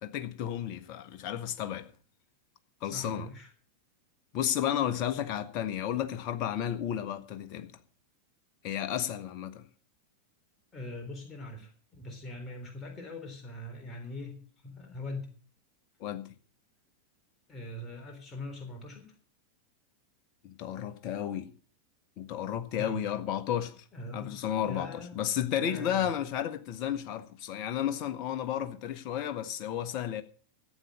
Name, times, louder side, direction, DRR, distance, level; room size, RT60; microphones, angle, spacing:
voice 1, 0.0-1.8 2.8-3.3 4.3-7.7 8.6-9.6 16.0-16.3 20.4-21.5 22.2-23.8 24.1-30.2, left 10 dB, 40° left, 1.5 m, -32 dB
voice 2, 2.8-3.5 10.7-15.3 17.5-19.1 22.8-23.0 23.9-24.4 24.6-25.2 25.6-26.1, left 1 dB, 20° left, 3.7 m, -42 dB
14.5 x 8.7 x 6.5 m
figure-of-eight pair, 90°, 0 cm